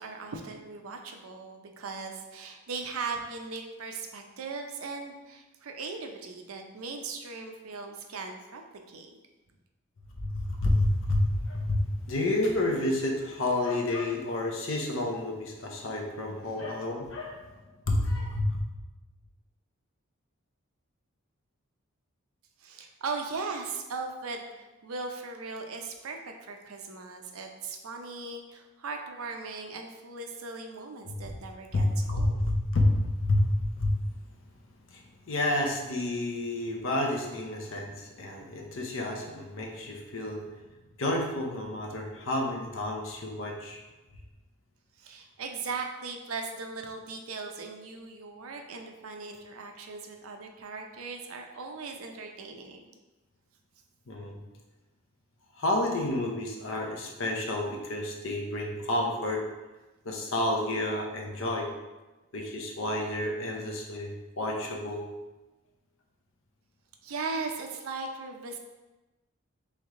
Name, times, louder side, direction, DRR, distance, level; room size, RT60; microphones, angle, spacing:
voice 1, 0.0-8.6 8.9-9.1 22.6-32.4 45.0-53.0 56.8-56.9 67.0-68.6, right 4 dB, 80° right, 3 dB, 0.5 m, -38 dB
voice 2, 10.2-18.6 31.1-31.2 31.7-34.0 34.9-40.5 41.0-43.8 54.1-54.4 55.6-59.5 60.0-61.7 62.3-65.1, left 1 dB, 65° left, 1 dB, 0.7 m, -30 dB
3.5 x 3.3 x 3.6 m, 1.1 s
head